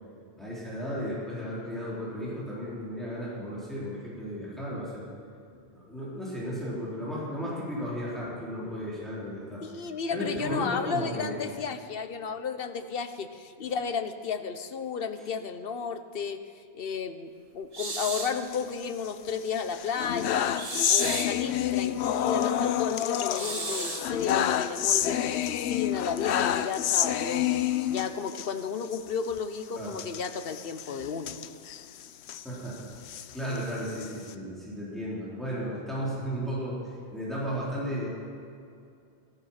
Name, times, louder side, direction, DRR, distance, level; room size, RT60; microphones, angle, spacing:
voice 1, 0.4-5.1 5.5-9.6 10.1-11.4 29.7-29.9 32.4-32.9 33.3-36.8 37.1-38.1, equal, ahead, -8 dB, 4.2 m, -34 dB
voice 2, 9.6-16.4 16.7-20.6 20.9-27.5 27.9-31.5, left 6 dB, 60° left, 9 dB, 1.1 m, -33 dB
sound 1, 17.7-18.4 20.5-21.4 23.3-24.1, right 3 dB, 35° right, 1.1 m, -34 dB
sound 2, 18.4-19.3 19.7-28.5 28.8-29.0 29.2-29.4 29.9-32.4 32.9-34.3, left 10 dB, 85° left, 0.9 m, -28 dB
14.0 x 13.5 x 5.8 m, 2.5 s
omnidirectional pair, 1.1 m